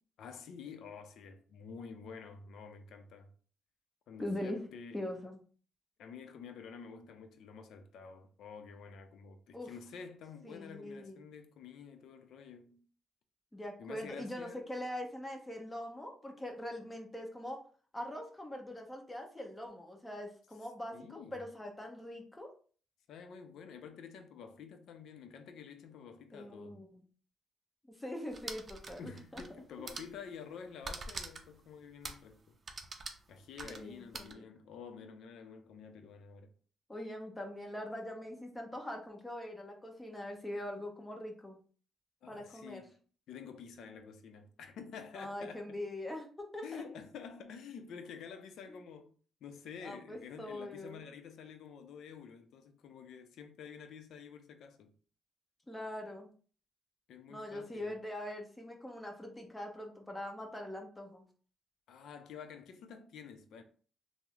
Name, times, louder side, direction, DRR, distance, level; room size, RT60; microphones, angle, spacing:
voice 1, 0.2-3.3 4.1-5.1 6.0-12.9 13.8-14.6 20.9-21.4 23.1-26.8 29.0-32.6 33.3-36.5 42.2-43.0 43.3-45.8 46.6-49.1 49.4-54.9 57.1-58.0 61.9-63.6, left 6 dB, 75° left, 0.5 m, -49 dB
voice 2, 4.2-4.6 4.9-5.4 9.5-9.7 10.4-11.2 13.5-17.6 17.9-22.5 26.3-27.0 27.9-29.4 29.8-30.0 33.6-34.4 36.9-41.6 42.3-42.8 45.1-46.3 46.5-46.9 49.8-51.0 55.7-56.3 57.3-61.2, left 1 dB, 10° left, 0.9 m, -42 dB
sound 1, 28.3-29.6 29.8-30.2 30.8-31.5 32.0-32.3 32.7-34.3, right 3 dB, 40° right, 0.5 m, -44 dB
3.5 x 2.0 x 3.1 m
cardioid pair, 90°, 0 cm